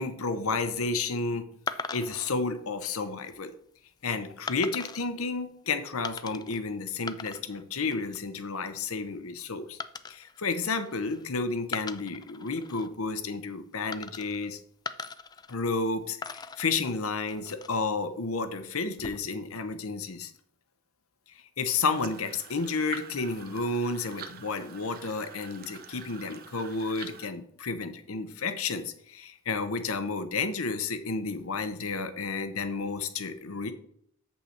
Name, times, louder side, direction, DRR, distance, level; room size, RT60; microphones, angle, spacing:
voice 1, 0.0-1.5 1.9-3.5 4.0-9.8 10.1-14.6 15.5-20.3 21.6-33.7, left 4 dB, 70° left, 9 dB, 0.8 m, -31 dB
sound 1, 1.7-2.3 3.0-3.3 4.5-5.1 6.0-6.6 6.9-7.6 7.9-8.3 9.8-11.3 11.6-12.9 13.9-14.5 14.9-15.9 16.2-17.9 18.8-19.5, left 4 dB, 20° left, 0.3 m, -40 dB
sound 2, 21.9-27.3, right 6 dB, 45° right, 0.7 m, -46 dB
7.9 x 5.6 x 4.3 m, 0.68 s
head